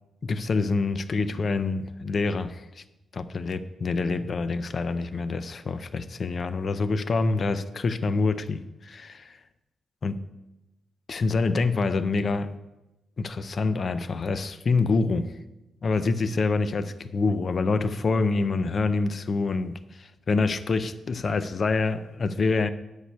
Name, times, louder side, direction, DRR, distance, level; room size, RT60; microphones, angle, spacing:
voice 1, 0.2-2.8 3.1-9.4 10.0-10.2 11.1-12.5 13.2-15.3 15.8-22.7, left 3 dB, 35° left, 0.5 m, -26 dB
10.5 x 4.8 x 8.0 m
wide cardioid pair, 175°, 0 cm